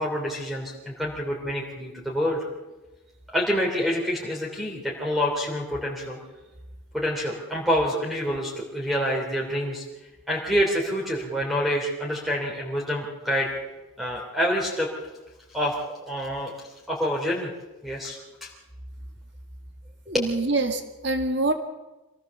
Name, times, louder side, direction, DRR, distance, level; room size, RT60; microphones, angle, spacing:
voice 1, 0.0-2.4 3.3-6.2 6.9-9.8 10.3-13.5 14.0-14.9 15.5-16.5 16.9-17.5 17.8-18.5 20.1-20.3, equal, ahead, -3 dB, 3.2 m, -27 dB
voice 2, 20.1-21.5, right 2 dB, 55° right, 6 dB, 2.2 m, -25 dB
25.0 x 18.0 x 7.1 m, 1.1 s
head